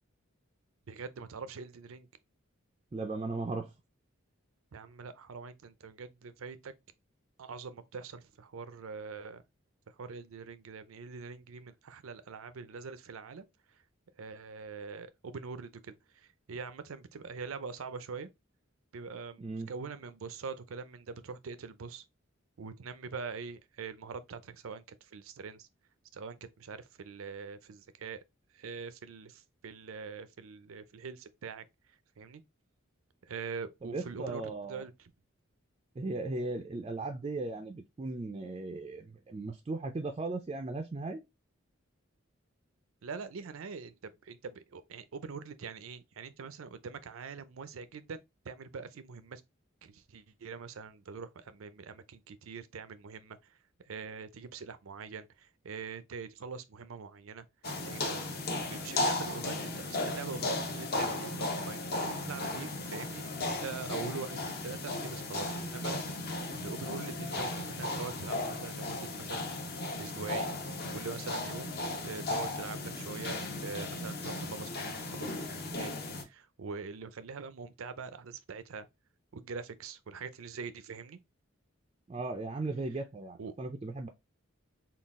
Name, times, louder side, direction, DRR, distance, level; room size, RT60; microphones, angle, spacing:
voice 1, 0.9-2.1 4.7-6.7 7.4-9.4 10.0-13.4 14.2-18.3 18.9-22.0 22.6-25.7 26.1-28.2 28.5-31.6 32.2-32.4 33.2-35.1 43.0-48.2 48.4-49.4 49.8-53.6 53.9-57.5 57.8-58.2 58.7-66.2 66.6-69.5 70.0-70.5 70.9-71.7 72.0-75.9 76.2-78.9 79.3-81.2 83.4-83.5, right 5 dB, 85° right, 0.5 m, -43 dB
voice 2, 2.9-3.7 19.4-19.7 33.8-34.8 36.0-41.2 82.1-84.1, right 3 dB, 30° right, 0.3 m, -37 dB
sound 1, 57.6-76.2, left 2 dB, 50° left, 0.8 m, -36 dB
3.8 x 2.3 x 3.5 m
head